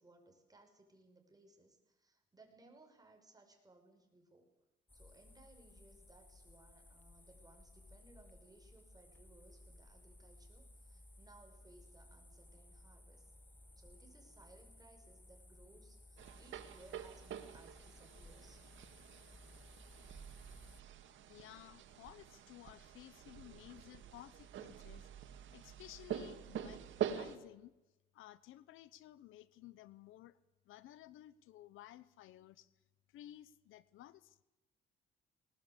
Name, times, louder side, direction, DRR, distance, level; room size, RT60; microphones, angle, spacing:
voice 1, 0.0-4.5 4.9-13.3 13.8-18.6, right 2 dB, 20° right, 3 dB, 6.0 m, -64 dB
sound 1, 4.9-20.8, left 1 dB, 10° left, 0.9 m, -60 dB
sound 2, 16.2-27.4, right 9 dB, 75° right, 1.9 m, -46 dB
voice 2, 21.3-27.8 28.1-30.4 30.7-32.7 33.1-34.4, left 14 dB, 85° left, 18 dB, 0.8 m, -56 dB
19.5 x 19.5 x 8.2 m, 0.98 s
cardioid pair, 90°, 20 cm